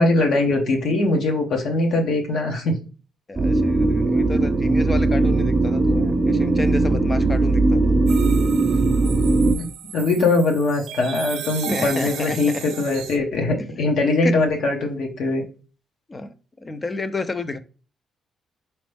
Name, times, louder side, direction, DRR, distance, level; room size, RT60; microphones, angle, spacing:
voice 1, 0.0-2.8 9.5-15.4, left 2 dB, 70° left, 1.2 m, -21 dB
voice 2, 3.3-8.0 11.7-12.6 13.1-13.2 13.6-13.7 14.2-14.5 16.1-17.6, left 2 dB, 25° left, 0.5 m, -30 dB
sound 1, 3.4-9.6, right 2 dB, 25° right, 0.5 m, -19 dB
sound 2, 8.1-13.2, right 10 dB, 80° right, 0.4 m, -35 dB
4.1 x 3.1 x 3.3 m
cardioid pair, 90°, 0 cm